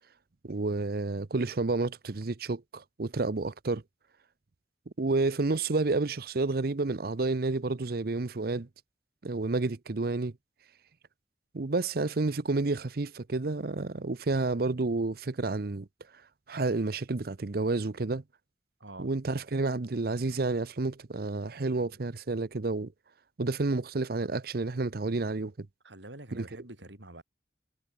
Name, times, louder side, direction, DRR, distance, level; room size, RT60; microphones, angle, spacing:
voice 1, 0.4-3.8 5.0-8.7 9.2-10.3 11.5-15.9 16.5-18.2 19.0-22.9 23.4-25.7 26.3-26.5, right 3 dB, 55° right, 0.7 m, -30 dB
voice 2, 18.8-19.1 21.9-22.0 25.8-27.2, right 1 dB, 85° right, 5.5 m, -47 dB
head